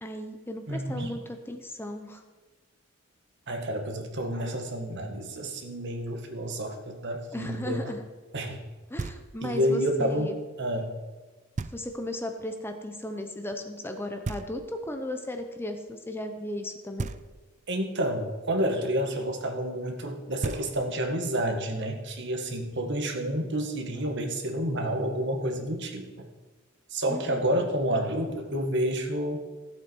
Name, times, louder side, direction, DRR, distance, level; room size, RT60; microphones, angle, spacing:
voice 1, 0.0-2.2 7.3-8.0 8.9-10.3 11.7-17.1 27.1-27.4, left 1 dB, 10° left, 5 dB, 0.8 m, -36 dB
voice 2, 0.7-1.1 3.5-7.9 8.3-8.6 9.4-11.0 17.7-26.3 26.9-29.5, right 1 dB, 60° right, 4 dB, 1.6 m, -29 dB
Knock, 9.0-9.6 11.6-12.2 14.2-15.0 17.0-17.7 20.0-20.1 20.4-21.2, right 3 dB, 35° right, 0.4 m, -37 dB
15.5 x 8.1 x 4.6 m, 1.3 s
head